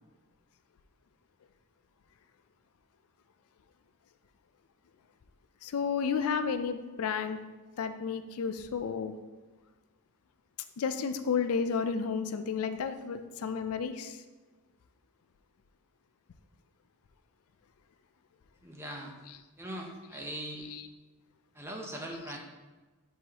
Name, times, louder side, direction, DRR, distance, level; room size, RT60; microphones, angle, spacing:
voice 1, 5.6-7.4 7.8-9.1 10.8-14.2 19.3-19.4 20.6-20.8, left 6 dB, 75° left, 9 dB, 0.4 m, -32 dB
voice 2, 18.6-19.1 19.6-20.7 21.5-22.4, right 1 dB, 10° right, 0 dB, 0.6 m, -40 dB
6.3 x 5.4 x 2.9 m, 1.2 s
head